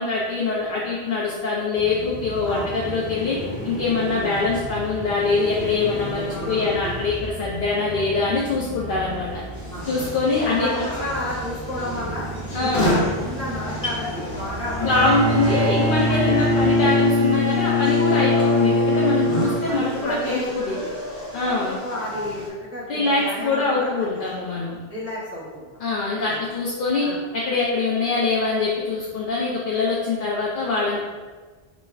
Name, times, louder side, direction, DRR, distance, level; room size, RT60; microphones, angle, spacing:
voice 1, 0.0-3.4 3.6-9.4 9.9-10.9 12.5-12.9 14.8-20.8 21.3-21.8 22.9-24.7 25.8-27.1 27.3-31.1, left 3 dB, 60° left, -5 dB, 0.6 m, -23 dB
sound 1, 1.7-16.7, right 1 dB, 70° right, 1.7 m, -34 dB
voice 2, 6.2-7.1 9.7-9.9 10.4-12.3 12.6-15.7 16.1-16.4 19.3-21.0 21.6-24.2 24.9-25.7 26.3-26.4 27.0-27.2, left 1 dB, 15° right, -9 dB, 0.6 m, -32 dB
sound 2, 9.5-22.5, equal, 45° left, 0.9 m, -32 dB
Bowed string instrument, 14.7-20.0, left 2 dB, 90° left, 1.2 m, -21 dB
5.0 x 2.1 x 2.3 m, 1.4 s
omnidirectional pair, 1.1 m